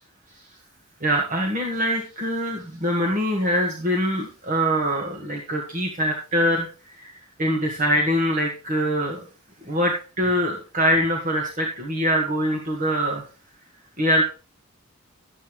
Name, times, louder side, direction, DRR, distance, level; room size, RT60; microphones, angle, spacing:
voice 1, 1.0-6.7 7.0-7.1 7.4-9.2 9.7-13.2 14.0-14.2, equal, 35° right, 0 dB, 1.7 m, -23 dB
12.5 x 8.2 x 3.2 m, 0.35 s
head